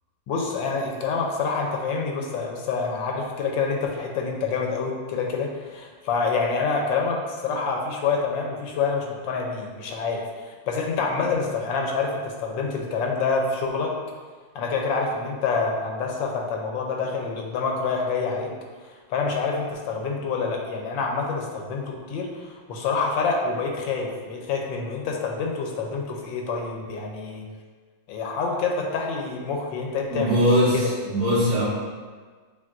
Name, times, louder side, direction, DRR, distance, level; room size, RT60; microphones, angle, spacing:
voice 1, 0.3-13.9 14.5-18.5 18.8-27.5 28.1-30.9, left 4 dB, 85° left, 0 dB, 1.3 m, -27 dB
voice 2, 30.1-31.6, equal, 50° right, -11 dB, 2.0 m, -21 dB
7.1 x 2.5 x 2.5 m, 1.5 s
omnidirectional pair, 2.0 m